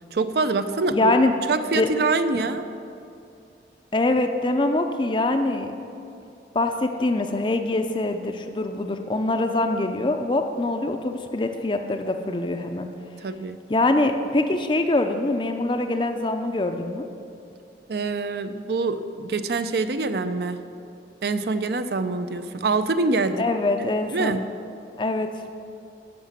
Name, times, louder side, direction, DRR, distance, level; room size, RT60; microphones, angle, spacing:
voice 1, 0.1-1.1 1.5-2.7 13.2-13.6 17.9-20.6 21.2-23.5 23.8-24.4, right 3 dB, 65° right, 11 dB, 0.5 m, -25 dB
voice 2, 0.9-1.3 1.8-1.9 3.9-5.7 6.5-12.9 13.7-17.1 23.4-24.3 25.0-25.3, left 2 dB, 25° left, 6 dB, 0.4 m, -24 dB
11.5 x 5.9 x 7.3 m, 2.6 s
head